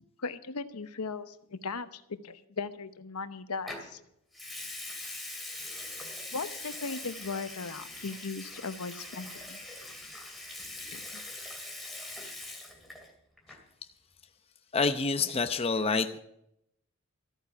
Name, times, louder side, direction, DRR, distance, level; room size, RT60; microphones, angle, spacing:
voice 1, 0.2-4.0 6.3-9.6 10.9-11.2, left 4 dB, 90° left, 11 dB, 0.9 m, -38 dB
Water tap faucet / Sink (filling or washing) / Liquid, 3.7-3.9 4.3-13.1 13.4-13.7, left 2 dB, ahead, 2.4 m, -42 dB
voice 2, 14.7-16.2, left 4 dB, 25° left, 7 dB, 0.7 m, -27 dB
14.0 x 9.2 x 7.1 m, 0.76 s
head